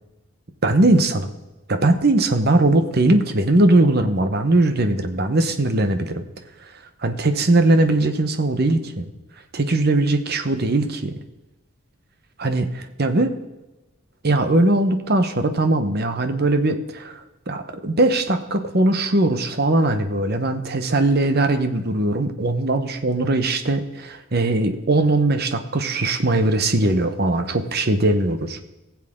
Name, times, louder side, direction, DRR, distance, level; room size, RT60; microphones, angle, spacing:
voice 1, 0.6-1.3 1.7-6.2 7.0-9.0 9.5-11.1 12.4-13.3 14.2-17.2 17.5-28.6, right 2 dB, 45° right, 7 dB, 1.0 m, -20 dB
20.0 x 7.4 x 3.7 m, 1.0 s
head